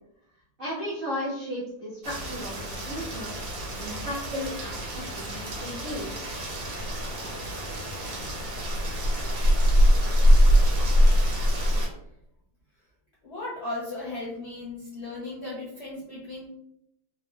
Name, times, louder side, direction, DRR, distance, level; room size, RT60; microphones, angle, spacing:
voice 1, 0.6-3.4 3.8-6.3, equal, 40° right, -9 dB, 0.9 m, -35 dB
Rain, 2.0-11.9, equal, 85° right, 1.4 m, -24 dB
voice 2, 13.2-16.5, left 2 dB, 55° left, -7 dB, 0.7 m, -36 dB
3.4 x 2.0 x 2.3 m, 0.78 s
omnidirectional pair, 1.8 m